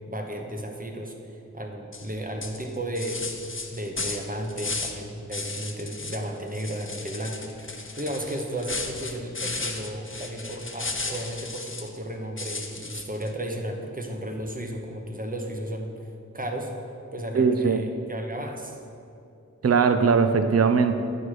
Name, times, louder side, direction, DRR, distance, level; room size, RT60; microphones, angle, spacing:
voice 1, 0.1-3.4 3.7-16.1 16.3-16.7 17.1-18.8, right 1 dB, 30° right, 2 dB, 1.0 m, -34 dB
sound 1, 1.9-2.1 2.4-5.0 5.3-6.2 6.5-12.0 12.4-13.3, left 3 dB, 40° left, 0.8 m, -34 dB
voice 2, 17.3-17.8 19.6-21.0, right 5 dB, 55° right, 8 dB, 0.5 m, -20 dB
9.5 x 6.1 x 4.9 m, 2.7 s
wide cardioid pair, 50°, 30 cm